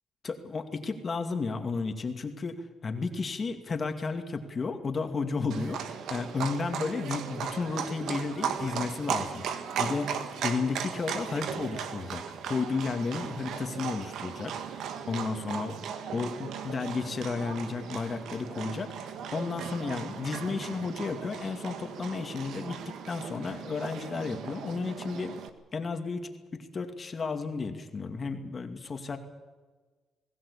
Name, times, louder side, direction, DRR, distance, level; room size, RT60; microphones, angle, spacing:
voice 1, 0.2-9.4 9.8-15.8 16.1-25.3 25.7-29.2, left 4 dB, 40° left, 6 dB, 2.4 m, -33 dB
Livestock farm animals working animals, 5.5-25.5, right 7 dB, 75° right, 1.8 m, -37 dB
21.0 x 17.0 x 8.6 m, 1.3 s
cardioid pair, 90°, 0 cm